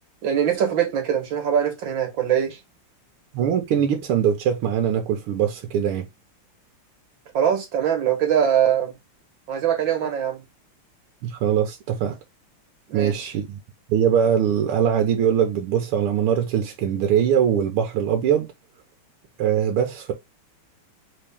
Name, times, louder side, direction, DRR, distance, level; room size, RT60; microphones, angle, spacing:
voice 1, 0.2-2.6 7.3-9.0 9.5-10.4 12.9-13.3, right 9 dB, 65° right, 2.0 m, -22 dB
voice 2, 3.3-6.1 11.2-12.2 12.9-13.6 13.9-18.5 19.4-20.1, right 9 dB, 85° right, 1.8 m, -22 dB
3.7 x 3.6 x 3.5 m
omnidirectional pair, 2.4 m